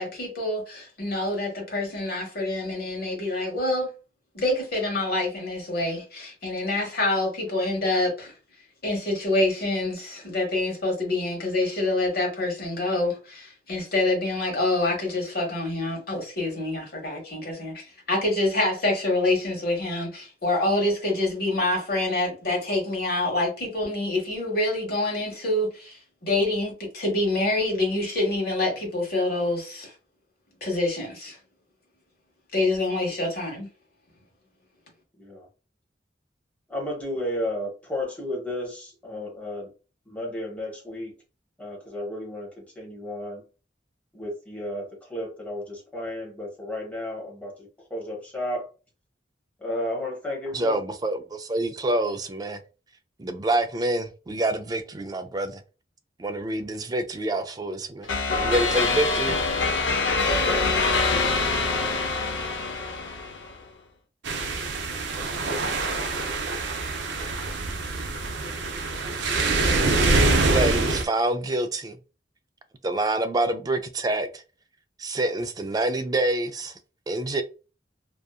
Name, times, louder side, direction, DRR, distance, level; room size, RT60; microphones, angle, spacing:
voice 1, 0.0-3.9 4.3-8.3 8.8-29.9 30.6-31.4 32.5-33.7, left 2 dB, 55° left, 1.3 m, -26 dB
voice 2, 36.7-39.7 40.1-41.1 41.6-43.4 44.1-48.7 49.6-50.8 60.2-60.6 68.8-68.9, left 1 dB, 10° left, 1.0 m, -33 dB
voice 3, 50.5-52.6 53.2-55.6 56.2-59.4 70.5-72.0 72.8-74.4 75.0-76.7 77.1-77.4, right 1 dB, 20° right, 0.3 m, -27 dB
sound 1, 58.1-63.6, left 3 dB, 85° left, 0.6 m, -24 dB
sound 2, 64.2-71.0, right 3 dB, 80° right, 0.5 m, -25 dB
2.7 x 2.4 x 2.3 m
head